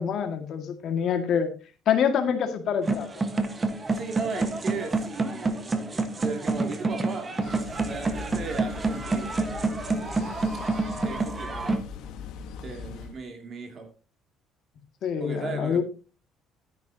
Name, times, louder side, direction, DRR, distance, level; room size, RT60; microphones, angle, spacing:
voice 1, 0.0-1.5 1.9-3.1 15.0-15.8, left 7 dB, 55° left, 2.0 m, -26 dB
sound 1, 2.8-11.8, right 3 dB, 25° right, 1.4 m, -28 dB
voice 2, 3.9-5.9 6.2-7.3 7.9-9.4 11.0-11.9 12.6-13.9 15.2-15.8, right 4 dB, 40° right, 2.6 m, -36 dB
sound 2, 7.4-13.2, left 6 dB, 70° left, 1.4 m, -40 dB
12.0 x 10.0 x 2.8 m
cardioid pair, 120°, 0 cm